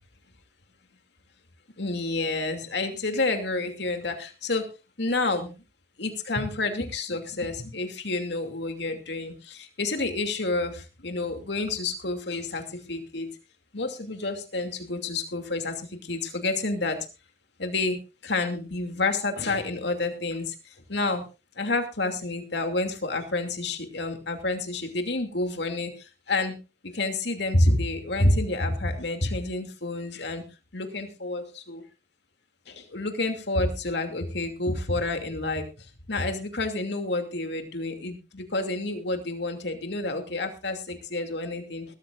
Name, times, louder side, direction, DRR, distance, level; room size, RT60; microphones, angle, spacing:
voice 1, 1.8-4.7 5.0-5.5 6.0-13.3 13.7-17.0 17.6-18.0 18.2-20.5 20.9-21.2 21.6-25.9 26.3-26.6 26.9-30.4 30.7-31.8 32.7-35.6 36.1-41.8, left 2 dB, 65° left, 6 dB, 2.7 m, -29 dB
21.0 x 13.5 x 2.5 m, 0.30 s
head